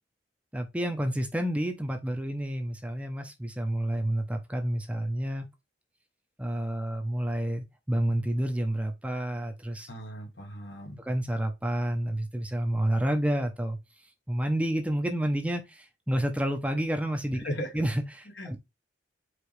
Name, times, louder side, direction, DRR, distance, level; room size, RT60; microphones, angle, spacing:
voice 1, 0.5-5.5 6.4-9.9 11.1-13.8 14.3-17.5 17.7-18.6, right 1 dB, 5° right, 0.7 m, -29 dB
voice 2, 9.9-11.0 17.3-17.7 18.4-18.6, equal, 70° left, 1.4 m, -37 dB
4.8 x 3.1 x 3.2 m
head